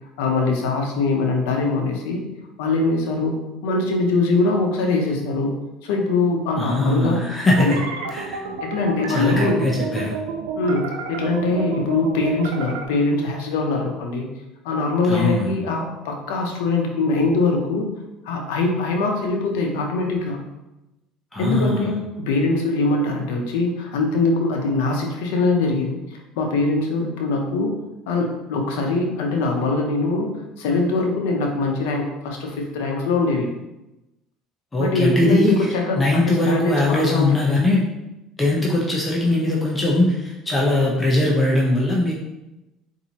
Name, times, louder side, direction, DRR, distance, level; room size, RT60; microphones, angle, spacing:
voice 1, 0.2-2.2 2.6-5.5 5.8-7.2 7.6-7.8 8.6-9.6 10.6-14.3 14.6-17.9 18.2-20.4 21.4-27.7 28.1-30.3 30.6-33.5 34.8-37.3, left 3 dB, 85° left, 2 dB, 0.7 m, -22 dB
voice 2, 6.5-7.8 8.1-8.4 9.1-10.2 15.0-15.5 21.3-21.9 34.7-37.8 38.4-42.1, left 1 dB, 20° left, -3 dB, 0.7 m, -20 dB
sound 1, 7.5-12.9, right 5 dB, 90° right, 0.4 m, -30 dB
4.1 x 2.7 x 2.8 m, 0.97 s
supercardioid pair, 90°, 0 cm